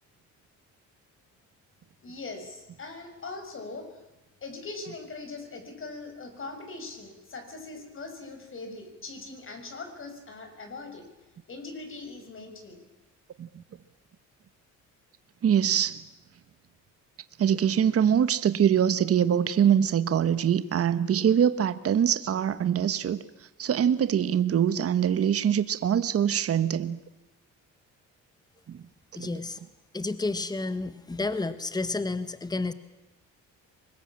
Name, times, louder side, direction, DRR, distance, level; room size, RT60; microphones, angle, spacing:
voice 1, 2.0-4.0 4.4-11.0 11.5-12.8, left 3 dB, 40° left, 6.5 m, -41 dB
voice 2, 15.4-16.0 17.4-23.2 23.6-27.0 28.7-28.8 29.2-29.3, right 9 dB, 45° right, 1.3 m, -24 dB
voice 3, 29.2-29.6 29.9-32.7, left 3 dB, 10° left, 1.4 m, -31 dB
25.0 x 21.0 x 8.8 m
cardioid pair, 105°, 32 cm